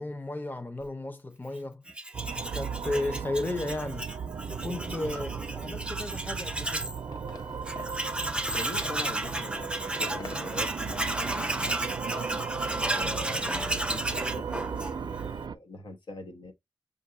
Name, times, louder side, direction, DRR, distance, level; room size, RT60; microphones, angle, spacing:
voice 1, 0.0-1.8 2.5-4.1 4.5-6.9, left 2 dB, 25° left, 0.7 m, -34 dB
Tools, 1.9-7.0 7.3-7.4 7.7-15.3, right 1 dB, 15° right, 0.5 m, -33 dB
sound 1, 2.1-15.6, right 6 dB, 65° right, 0.3 m, -37 dB
sound 2, 6.8-14.0, left 3 dB, 55° left, 0.8 m, -48 dB
voice 2, 8.5-12.5 13.0-16.5, left 2 dB, 80° left, 1.0 m, -43 dB
5.3 x 2.6 x 2.5 m
wide cardioid pair, 75°, 8 cm